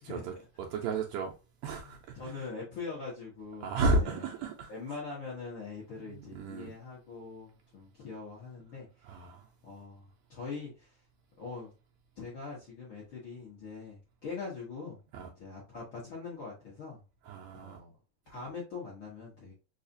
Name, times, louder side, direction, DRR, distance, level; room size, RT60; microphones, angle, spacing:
voice 1, 0.0-1.3 1.6-2.3 3.6-4.7 6.1-6.8 9.0-9.5 15.1-15.3 17.3-17.8, right 2 dB, 80° right, 1.7 m, -33 dB
voice 2, 1.8-3.7 4.0-4.3 4.7-9.2 9.6-11.0 11.4-11.7 12.2-15.0 15.2-17.0 17.5-17.9 18.3-19.5, left 4 dB, 55° left, 1.4 m, -43 dB
4.8 x 2.4 x 2.6 m
omnidirectional pair, 3.5 m